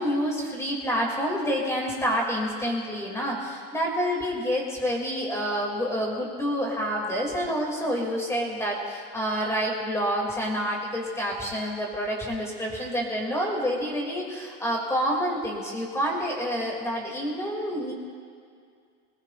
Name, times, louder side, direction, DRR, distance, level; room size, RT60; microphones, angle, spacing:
voice 1, 0.0-17.9, equal, 10° left, -2 dB, 2.6 m, -28 dB
21.5 x 20.0 x 2.5 m, 2.2 s
supercardioid pair, 140°, 32 cm